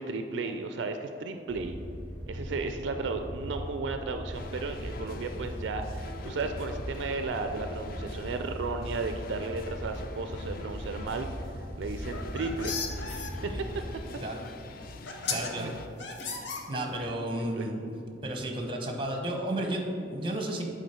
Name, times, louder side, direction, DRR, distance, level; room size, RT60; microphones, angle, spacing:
voice 1, 0.0-1.8 2.3-11.3 11.8-12.7 13.1-13.5 15.3-15.7 17.0-17.1 17.5-17.7, right 3 dB, 70° right, 7 dB, 0.3 m, -34 dB
sound 1, 1.5-14.0, equal, 15° left, 0.7 m, -39 dB
sound 2, 4.3-15.9, left 3 dB, 50° left, 0.3 m, -45 dB
sound 3, 12.0-13.3 14.5-14.6 15.1-15.5 16.0-17.1, left 5 dB, 65° left, 0.7 m, -35 dB
voice 2, 13.5-13.8 14.2-14.4 15.3-15.7 16.7-17.9 18.2-20.6, right 1 dB, 25° right, 2 dB, 0.8 m, -33 dB
8.1 x 3.9 x 4.3 m, 2.7 s
head